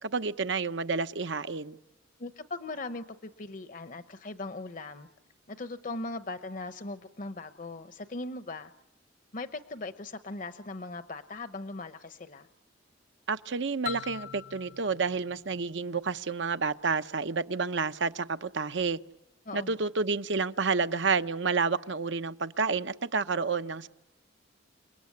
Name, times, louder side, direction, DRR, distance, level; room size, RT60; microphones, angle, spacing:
voice 1, 0.0-1.8 13.3-19.0 19.5-23.9, right 4 dB, 70° right, 0.9 m, -30 dB
voice 2, 2.2-5.1 5.5-8.7 9.3-12.5 19.5-19.7, left 2 dB, 45° left, 0.9 m, -39 dB
sound 1, 13.9-16.6, left 11 dB, 80° left, 0.9 m, -43 dB
30.0 x 18.5 x 9.7 m
head